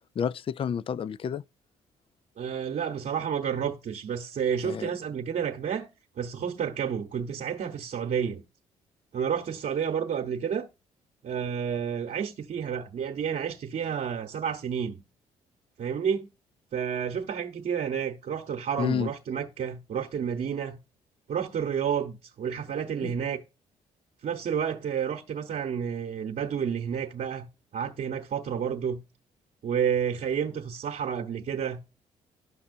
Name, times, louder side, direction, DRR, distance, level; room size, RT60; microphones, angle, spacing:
voice 1, 0.2-1.4 4.6-4.9 18.8-19.1 23.0-23.1, left 7 dB, 35° left, 0.4 m, -30 dB
voice 2, 2.4-5.9 6.2-8.4 9.1-10.7 11.2-15.0 15.8-16.3 16.7-20.8 21.3-23.4 24.2-29.0 29.6-31.8, right 7 dB, 55° right, 1.1 m, -30 dB
11.5 x 5.9 x 2.6 m
hypercardioid pair, 50°, 16 cm